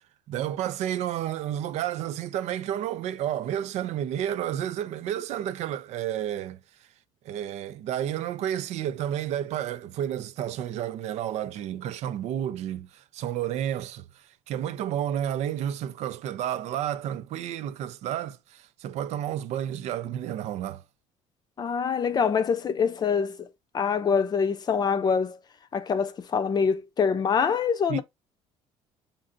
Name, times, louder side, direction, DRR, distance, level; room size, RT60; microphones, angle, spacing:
voice 1, 0.3-6.6 7.2-20.8 27.9-28.0, right 11 dB, 70° right, 0.5 m, -31 dB
voice 2, 21.6-23.5 23.7-25.4 25.7-28.0, left 6 dB, 35° left, 0.6 m, -25 dB
5.3 x 2.6 x 2.6 m
cardioid pair, 115°, 12 cm